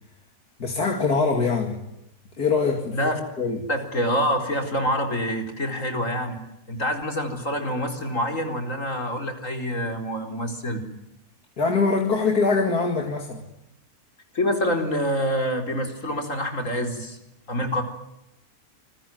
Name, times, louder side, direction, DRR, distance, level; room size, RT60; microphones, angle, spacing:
voice 1, 0.6-1.8 2.4-3.0 3.4-3.6 11.6-13.4, left 4 dB, 80° left, 3 dB, 2.9 m, -23 dB
voice 2, 3.7-6.4 6.7-10.8 14.3-17.2 17.5-17.8, equal, 55° left, 4 dB, 4.8 m, -26 dB
28.5 x 22.0 x 9.3 m, 0.86 s
omnidirectional pair, 1.6 m